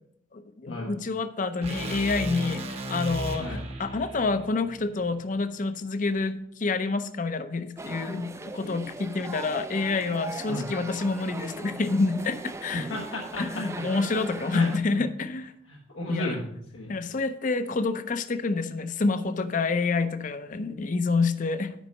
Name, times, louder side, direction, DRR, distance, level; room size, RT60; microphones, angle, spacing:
voice 1, 0.3-2.6 2.9-12.9 13.4-15.5 16.1-16.4 16.9-21.7, left 3 dB, 40° left, 11 dB, 0.5 m, -28 dB
sound 1, 1.6-5.8, right 2 dB, 30° right, 0.9 m, -36 dB
sound 2, 7.8-14.8, right 2 dB, 15° right, 0.3 m, -39 dB
voice 2, 12.9-13.6 14.5-15.0 15.7-16.9, left 2 dB, 85° left, -2 dB, 1.2 m, -33 dB
9.2 x 5.4 x 5.3 m, 0.75 s
head